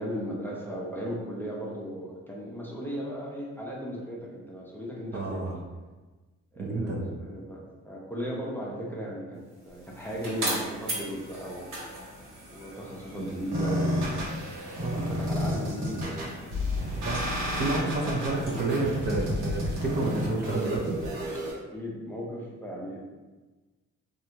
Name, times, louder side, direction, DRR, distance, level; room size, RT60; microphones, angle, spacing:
voice 1, 0.0-5.4 6.5-11.7 12.5-14.0 14.5-16.2 17.8-18.2 21.7-23.0, equal, 5° left, -5 dB, 0.6 m, -36 dB
voice 2, 5.1-5.5 6.6-7.1 13.2-13.3 14.8-15.1 17.0-17.2 17.5-21.0, right 2 dB, 35° right, -2 dB, 0.6 m, -29 dB
sound 1, 9.5-21.1, right 1 dB, 65° right, 1.4 m, -40 dB
sound 2, 13.5-21.5, left 1 dB, 85° right, 1.0 m, -31 dB
3.3 x 2.5 x 2.8 m, 1.2 s
cardioid pair, 90°, 30 cm